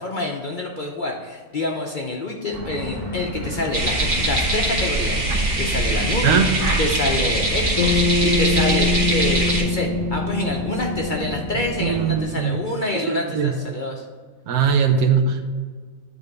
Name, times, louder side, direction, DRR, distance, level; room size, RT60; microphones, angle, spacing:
voice 1, 0.0-6.4 6.8-14.0, left 2 dB, 50° left, 1 dB, 0.6 m, -27 dB
sound 1, 2.5-12.3, equal, 55° right, 2.0 m, -31 dB
sound 2, 3.7-9.6, right 2 dB, 40° right, 1.1 m, -22 dB
Bass guitar, 7.8-12.2, left 4 dB, 85° left, 1.4 m, -24 dB
voice 2, 11.8-12.6 13.3-13.5 14.5-15.5, right 6 dB, 80° right, 6 dB, 1.3 m, -19 dB
9.7 x 3.5 x 5.3 m, 1.5 s
omnidirectional pair, 1.5 m